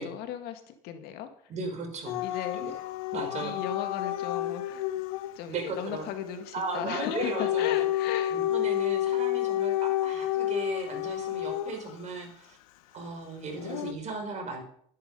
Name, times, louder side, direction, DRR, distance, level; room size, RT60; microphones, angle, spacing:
voice 1, 0.0-1.3 2.2-2.6 3.4-4.9 5.4-8.4 9.0-9.2 9.4-9.6, left 10 dB, 65° left, 7 dB, 2.0 m, -36 dB
voice 2, 1.5-2.7 3.1-3.6 5.5-6.1 6.5-7.7 8.3-12.6 12.9-14.6, right 3 dB, 40° right, 3 dB, 5.2 m, -36 dB
Dog / Siren, 2.1-5.3 6.8-12.0 13.6-13.9, left 13 dB, 85° left, 0.9 m, -30 dB
12.5 x 10.5 x 5.4 m, 0.64 s
supercardioid pair, 90°, 18 cm